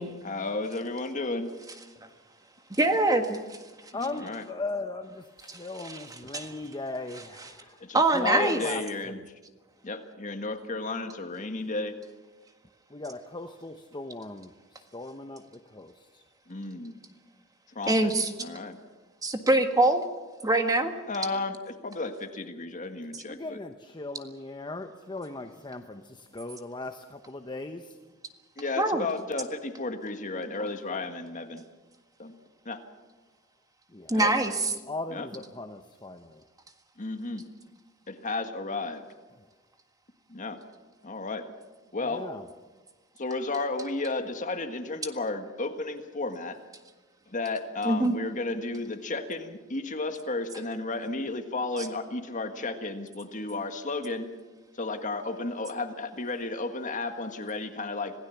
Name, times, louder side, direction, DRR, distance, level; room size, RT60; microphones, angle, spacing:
voice 1, 0.2-1.5 4.0-4.4 7.8-9.2 9.8-11.9 16.5-17.0 17.7-18.8 21.1-23.6 28.6-31.6 32.2-32.3 32.6-32.8 34.1-34.3 35.1-35.3 37.0-37.5 38.1-39.0 40.3-40.6 41.0-41.5 41.9-42.3 43.2-46.6 47.3-54.3 54.8-58.1, left 3 dB, 40° left, 7 dB, 1.7 m, -33 dB
voice 2, 2.7-3.4 5.5-5.6 5.8-6.0 6.3-6.5 7.9-8.6 17.9-18.3 19.2-20.1 20.4-20.9 23.1-23.2 28.8-29.1 34.1-34.7 47.8-48.1, right 2 dB, 20° right, 6 dB, 1.6 m, -24 dB
voice 3, 3.9-7.8 8.1-9.2 12.9-16.2 21.3-21.4 23.2-28.0 33.9-34.2 34.9-36.4 42.0-42.5, left 2 dB, 20° left, 7 dB, 0.8 m, -38 dB
26.5 x 16.5 x 7.1 m, 1.3 s
head